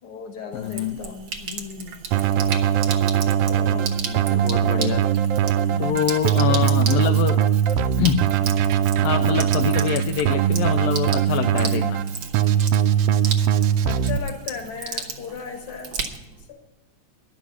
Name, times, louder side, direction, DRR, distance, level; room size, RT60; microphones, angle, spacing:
voice 1, 0.0-2.0 3.5-3.9 5.6-6.2 13.8-15.9 16.4-16.6, left 6 dB, 50° left, 5 dB, 2.0 m, -36 dB
voice 2, 0.5-1.0 4.1-5.1 5.8-7.4 8.0-8.3 9.0-12.0, left 10 dB, 80° left, 6 dB, 1.5 m, -25 dB
Sink (filling or washing), 0.5-16.5, right 5 dB, 60° right, 1.4 m, -35 dB
Keyboard (musical), 2.1-14.2, right 9 dB, 90° right, 1.3 m, -21 dB
11.5 x 7.1 x 9.3 m, 0.92 s
omnidirectional pair, 3.4 m